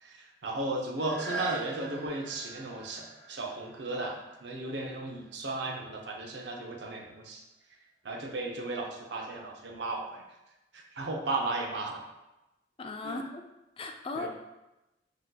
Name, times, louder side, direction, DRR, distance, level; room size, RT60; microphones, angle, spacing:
voice 1, 0.0-7.4 8.0-10.2 10.7-12.0 13.0-13.2 14.2-14.3, right 2 dB, 70° right, 1 dB, 0.6 m, -35 dB
sound 1, 1.0-6.6 7.2-7.3, right 3 dB, 70° left, 0.6 m, -42 dB
voice 2, 12.8-13.5 13.8-14.3, left 3 dB, 30° left, 4 dB, 0.4 m, -37 dB
6.2 x 2.8 x 2.2 m, 0.98 s
head